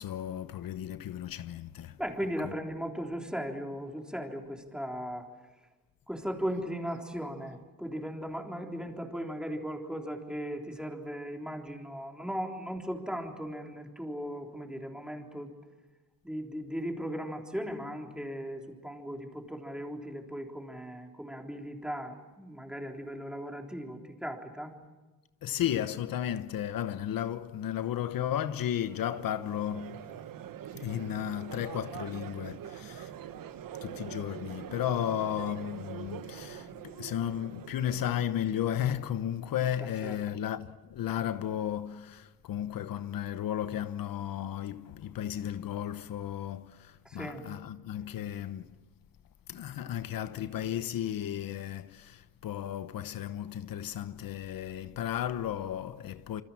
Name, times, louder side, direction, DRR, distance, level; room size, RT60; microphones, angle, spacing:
voice 1, 0.0-2.0 25.4-30.1 30.7-33.1 33.8-48.7 49.5-56.4, left 10 dB, 80° left, 1.0 m, -34 dB
voice 2, 2.0-5.3 6.1-15.5 16.2-24.7 39.8-40.4 47.1-47.4, equal, ahead, 3.7 m, -37 dB
Crowd, 28.9-39.0, right 10 dB, 75° right, 1.2 m, -44 dB
27.5 x 26.5 x 7.3 m
cardioid pair, 135°, 33 cm